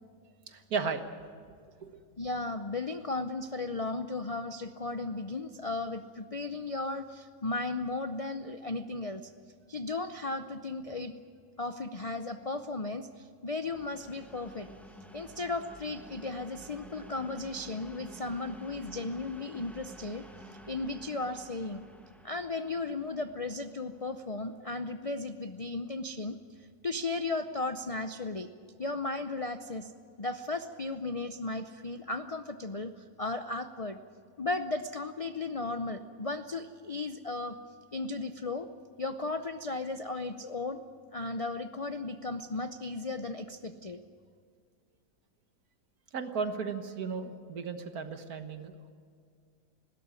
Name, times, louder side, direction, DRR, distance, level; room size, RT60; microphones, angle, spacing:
voice 1, 0.5-1.0 1.8-1.9 46.1-48.9, right 5 dB, 70° right, 8 dB, 1.8 m, -35 dB
voice 2, 2.2-9.2 9.7-11.1 11.6-14.7 15.1-20.2 20.7-21.8 22.2-26.4 26.8-28.5 28.8-29.9 30.2-32.9 33.2-34.0 34.4-37.6 37.9-38.7 39.0-40.8 41.1-44.0, left 3 dB, 50° left, 9 dB, 0.4 m, -35 dB
sound 1, 13.6-25.2, equal, ahead, 1.6 m, -52 dB
20.0 x 17.0 x 9.6 m, 2.1 s
omnidirectional pair, 1.7 m